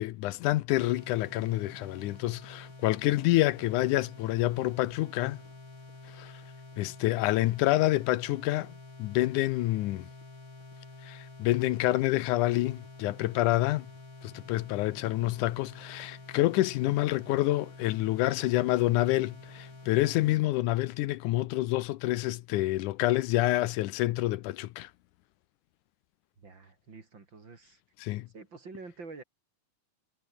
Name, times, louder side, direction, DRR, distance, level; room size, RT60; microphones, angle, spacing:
voice 1, 0.0-5.4 6.1-6.3 6.8-10.1 11.0-13.9 14.2-24.9 28.0-28.3, left 17 dB, 80° left, 2.2 m, -28 dB
sound 1, 0.8-20.4, left 2 dB, 40° left, 7.7 m, -49 dB
voice 2, 26.4-27.8 28.2-29.2, right 4 dB, 35° right, 3.9 m, -48 dB
omnidirectional pair, 3.5 m